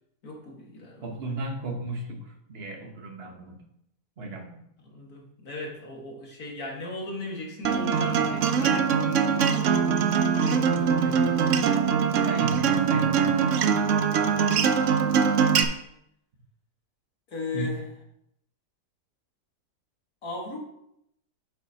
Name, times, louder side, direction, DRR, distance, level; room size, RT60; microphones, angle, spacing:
voice 1, 0.2-1.1 4.8-9.8 10.4-11.6 14.1-14.5 17.3-17.9 20.2-20.6, left 2 dB, 60° left, -1 dB, 2.1 m, -37 dB
voice 2, 1.0-3.6 4.2-4.6 12.1-13.5 17.5-17.8, right 2 dB, 40° right, 2 dB, 1.3 m, -35 dB
Acoustic guitar, 7.6-15.6, right 6 dB, 65° right, 0.8 m, -23 dB
9.2 x 7.1 x 2.8 m, 0.77 s
omnidirectional pair, 1.8 m